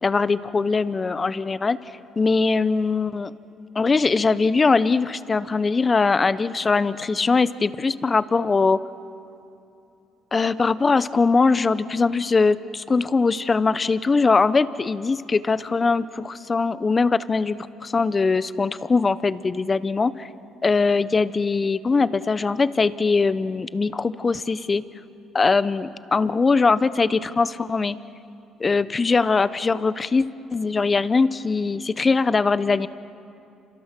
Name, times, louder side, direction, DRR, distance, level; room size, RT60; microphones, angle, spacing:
voice 1, 0.0-1.8 2.2-3.3 3.7-8.8 10.3-20.3 20.6-24.8 25.3-28.0 28.6-32.9, left 4 dB, 30° left, 15 dB, 1.0 m, -21 dB
29.0 x 26.5 x 6.2 m, 2.7 s
supercardioid pair, 65°, 0 cm